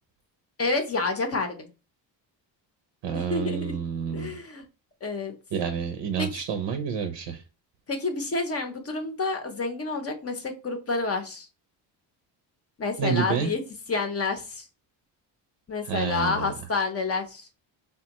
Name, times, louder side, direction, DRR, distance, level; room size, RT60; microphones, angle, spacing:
voice 1, 0.6-1.7 3.1-3.7 4.1-4.6 5.0-5.3 6.2-6.5 7.9-11.5 12.8-13.6 13.9-14.7 15.7-17.5, left 3 dB, 30° left, 6 dB, 0.6 m, -29 dB
voice 2, 3.0-4.4 5.5-7.4 13.0-13.5 15.8-16.5, right 7 dB, 70° right, 7 dB, 0.7 m, -29 dB
3.4 x 2.2 x 2.8 m, 0.31 s
cardioid pair, 95°, 47 cm